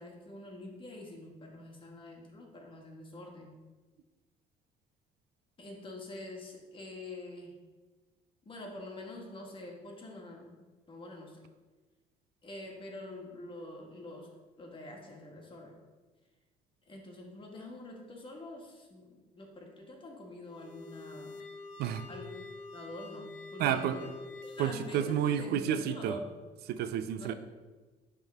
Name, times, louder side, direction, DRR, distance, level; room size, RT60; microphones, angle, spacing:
voice 1, 0.0-3.5 5.6-7.6 8.4-11.4 12.4-14.3 14.6-15.8 16.9-21.4 22.1-22.4 22.7-24.1 24.4-26.4 27.1-27.3, left 2 dB, 30° left, 0 dB, 1.5 m, -46 dB
sound 1, 20.5-25.3, left 3 dB, 80° left, 0.9 m, -47 dB
voice 2, 23.6-24.0 24.6-26.2 26.7-27.3, right 9 dB, 70° right, 12 dB, 0.4 m, -30 dB
10.5 x 3.7 x 3.5 m, 1.3 s
cardioid pair, 110°, 17 cm